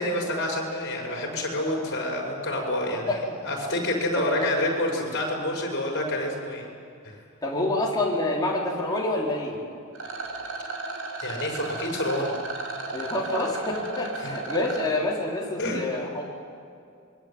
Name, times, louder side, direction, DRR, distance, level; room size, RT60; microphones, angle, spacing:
voice 1, 0.0-3.2 3.4-6.7 7.0-7.2 11.2-12.4 14.2-14.4 15.6-15.8, left 1 dB, 50° left, 1 dB, 6.2 m, -28 dB
voice 2, 4.1-4.5 7.4-9.6 12.9-16.2, left 2 dB, 20° left, -3 dB, 4.1 m, -27 dB
Rattle, 9.9-14.9, right 3 dB, 70° right, 5.5 m, -34 dB
25.5 x 23.0 x 8.9 m, 2.4 s
head